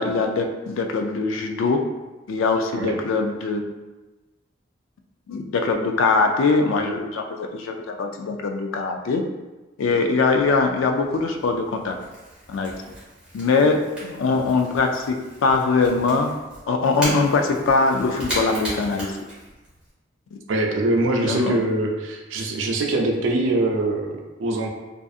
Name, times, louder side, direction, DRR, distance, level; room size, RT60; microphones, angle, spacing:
voice 1, 0.0-1.8 2.3-3.6 5.3-9.2 9.8-12.0 12.5-12.7 13.3-16.3 16.7-19.1 20.3-20.4 21.2-21.6, left 4 dB, 85° left, 4 dB, 0.3 m, -22 dB
Crackle / Crack, 10.4-19.9, right 1 dB, 5° right, 0.9 m, -37 dB
voice 2, 20.5-24.7, right 2 dB, 80° right, 2 dB, 0.4 m, -23 dB
2.6 x 2.4 x 2.3 m, 1.2 s
head